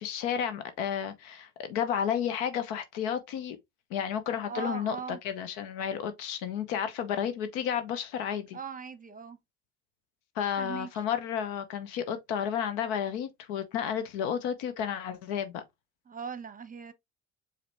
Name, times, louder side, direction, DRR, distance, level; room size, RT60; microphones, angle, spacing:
voice 1, 0.0-3.6 3.9-8.6 10.4-15.6, left 8 dB, 85° left, 0.9 m, -32 dB
voice 2, 4.4-5.2 8.5-9.4 10.6-10.9 16.1-16.9, right 6 dB, 25° right, 0.9 m, -39 dB
4.9 x 2.9 x 3.2 m
supercardioid pair, 65°, 31 cm